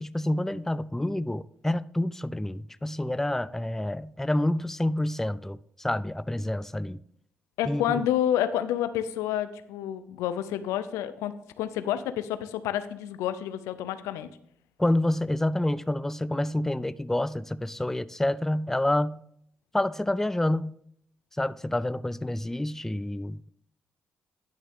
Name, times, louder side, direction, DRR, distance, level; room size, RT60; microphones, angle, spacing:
voice 1, 0.0-7.0 7.6-8.0 14.8-19.2 19.7-20.7 21.4-23.5, left 1 dB, 10° left, 0.3 m, -28 dB
voice 2, 7.6-14.3, left 11 dB, 85° left, 0.5 m, -29 dB
10.5 x 6.2 x 3.6 m
supercardioid pair, 45°, 5 cm